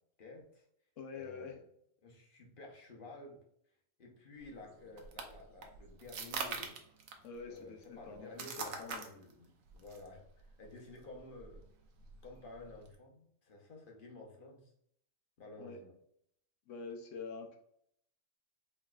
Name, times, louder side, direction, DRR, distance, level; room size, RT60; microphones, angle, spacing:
voice 1, 0.2-0.7 1.1-1.6 2.0-3.4 4.0-6.8 7.4-11.6 12.2-14.7 15.4-15.9, left 2 dB, 45° left, 0 dB, 0.9 m, -52 dB
voice 2, 1.0-1.5 7.2-8.5 8.8-9.0 15.6-15.8 16.7-17.6, left 4 dB, 75° left, 3 dB, 1.0 m, -46 dB
sound 1, 4.4-13.0, right 5 dB, 85° right, 1.1 m, -46 dB
4.5 x 3.2 x 2.3 m, 0.71 s
omnidirectional pair, 1.4 m